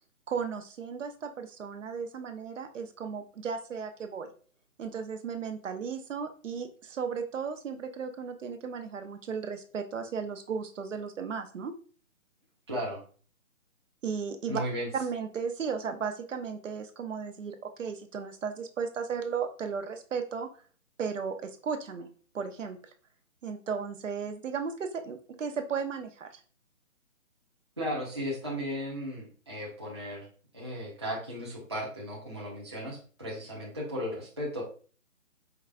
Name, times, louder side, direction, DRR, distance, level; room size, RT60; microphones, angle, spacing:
voice 1, 0.3-4.3 4.8-11.7 14.0-14.6 14.9-20.5 21.0-22.1 22.3-22.8 23.4-26.4, right 6 dB, 65° right, 7 dB, 0.6 m, -35 dB
voice 2, 12.7-13.0 14.5-14.9 27.8-30.3 30.5-34.6, equal, 20° right, -6 dB, 0.5 m, -35 dB
4.6 x 2.3 x 2.3 m, 0.41 s
hypercardioid pair, 160°, 41 cm